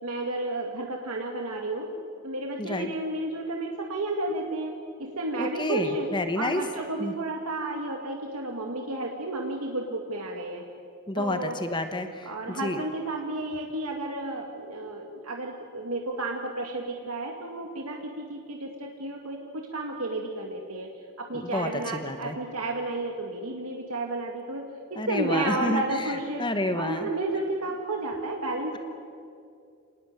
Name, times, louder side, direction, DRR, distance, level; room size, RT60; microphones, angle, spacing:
voice 1, 0.0-1.9 2.2-4.7 5.0-6.1 6.4-10.6 11.2-11.6 12.2-20.9 21.2-24.6 24.9-26.4 26.7-28.8, right 2 dB, 85° right, 2 dB, 2.0 m, -32 dB
voice 2, 2.6-2.9 5.4-6.6 7.0-7.1 11.1-12.8 21.3-22.4 25.0-27.1, left 1 dB, 20° left, 8 dB, 1.2 m, -30 dB
26.0 x 19.0 x 9.0 m, 2.4 s
head